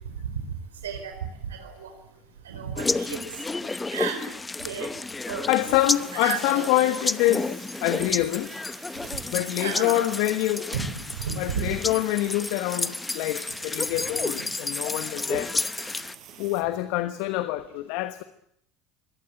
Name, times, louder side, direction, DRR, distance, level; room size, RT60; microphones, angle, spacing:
voice 1, 0.8-1.1 1.5-1.9 2.4-3.3 3.7-4.2 4.6-4.9 5.3-5.5 6.2-6.7 9.6-10.1 10.7-10.8 11.2-11.7, right 7 dB, 85° right, 4.8 m, -33 dB
sound 1, 2.8-16.1, left 3 dB, 15° left, 0.9 m, -31 dB
voice 2, 5.5-8.5 9.3-10.7 11.4-15.6 16.4-18.2, left 15 dB, 65° left, 1.3 m, -26 dB
sound 2, 5.8-16.6, right 9 dB, 45° right, 5.0 m, -47 dB
24.0 x 18.5 x 9.0 m
hypercardioid pair, 75°, 0 cm